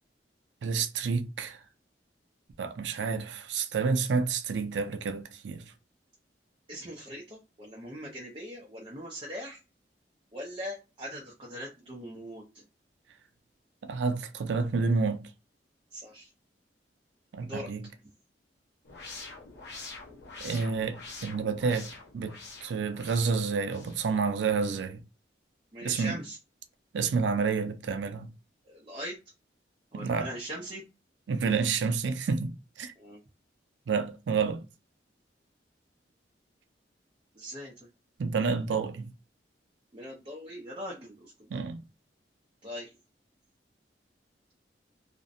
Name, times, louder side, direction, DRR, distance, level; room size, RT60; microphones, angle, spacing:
voice 1, 0.6-1.6 2.6-5.6 13.8-15.3 17.3-17.8 20.4-21.9 22.1-25.0 25.8-26.2 26.9-28.3 29.9-30.3 31.3-32.9 33.9-34.6 38.2-39.1 41.5-41.8, right 5 dB, 90° right, 0.4 m, -29 dB
voice 2, 6.7-9.6 10.3-12.6 15.9-16.3 17.4-17.7 25.7-26.4 28.6-29.2 29.9-30.8 33.0-33.2 37.4-37.8 39.9-41.6 42.6-42.9, equal, 30° right, 0.5 m, -41 dB
sound 1, 18.9-24.0, left 3 dB, 65° left, 0.8 m, -46 dB
2.5 x 2.0 x 2.6 m
head